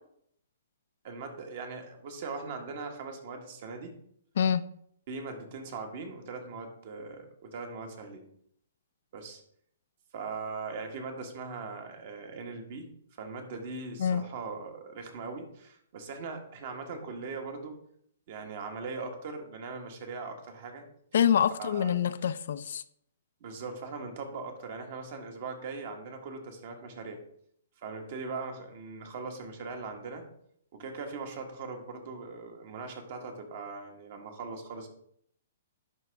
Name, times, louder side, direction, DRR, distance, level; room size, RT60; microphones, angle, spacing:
voice 1, 1.0-3.9 5.1-8.2 9.1-9.4 10.1-12.9 13.2-17.8 18.3-20.9 21.6-21.9 23.4-27.2 27.8-30.2 30.7-34.9, right 4 dB, 50° right, 4 dB, 1.5 m, -40 dB
voice 2, 4.4-4.7 14.0-14.3 21.1-22.8, left 8 dB, 65° left, 14 dB, 0.4 m, -26 dB
10.5 x 3.7 x 3.4 m, 0.67 s
hypercardioid pair, 145°, 0 cm